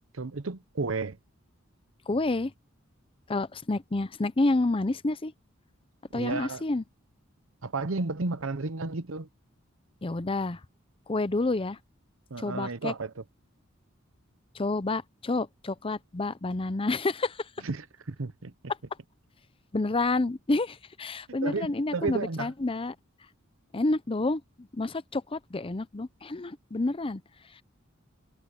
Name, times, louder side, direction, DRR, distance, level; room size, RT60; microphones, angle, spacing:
voice 1, 0.1-1.2 6.1-6.6 7.6-9.3 12.3-13.2 17.6-18.5 21.4-22.5, right 3 dB, 70° right, 0.9 m, -32 dB
voice 2, 2.1-2.5 3.3-5.3 6.1-6.8 10.0-10.6 11.1-11.8 12.4-12.9 14.5-17.5 19.7-22.9 23.7-27.2, left 2 dB, 25° left, 0.6 m, -29 dB
head